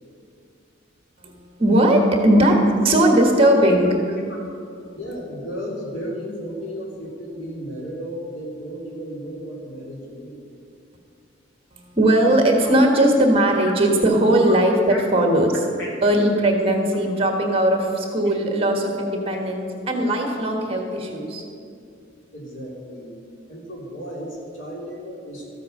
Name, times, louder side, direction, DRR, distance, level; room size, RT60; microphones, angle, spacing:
voice 1, 1.6-2.6 2.8-3.9 11.9-15.5 16.0-21.4, right 1 dB, 30° right, 2 dB, 1.6 m, -18 dB
voice 2, 4.9-10.4 14.9-15.0 15.8-15.9 22.3-23.1 23.5-25.5, equal, 85° left, -3 dB, 3.3 m, -34 dB
14.0 x 8.3 x 6.6 m, 2.4 s
head